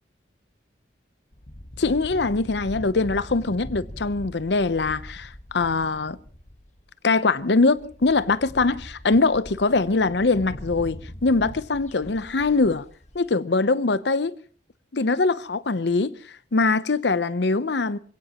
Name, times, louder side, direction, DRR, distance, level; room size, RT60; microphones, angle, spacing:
sound 1, 1.3-6.9 7.4-7.5 7.7-13.3, equal, 40° left, 1.4 m, -41 dB
voice 1, 1.8-6.2 7.0-12.8 13.1-14.3 14.9-16.2 16.5-18.0, left 3 dB, 65° left, 0.7 m, -22 dB
27.0 x 17.0 x 3.0 m
head